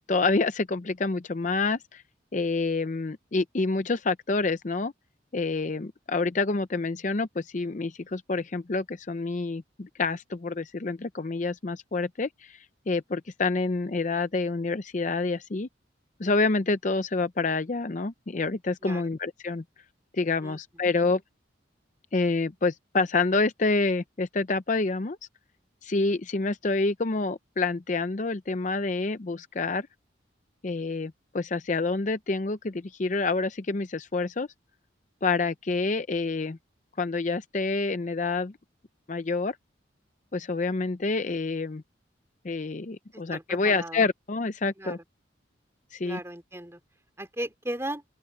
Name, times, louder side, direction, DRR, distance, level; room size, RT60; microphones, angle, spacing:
voice 1, 0.1-2.0 2.3-4.9 5.3-15.7 16.2-19.6 20.1-21.2 22.1-25.2 25.8-29.9 30.6-34.5 35.2-36.6 37.0-38.5 39.1-39.6 40.3-41.8 42.4-45.0 45.9-46.2, left 3 dB, 40° left, 0.6 m, -27 dB
voice 2, 43.1-44.0 44.8-45.0 46.0-46.8 47.2-48.0, right 1 dB, 15° right, 3.2 m, -36 dB
open air
head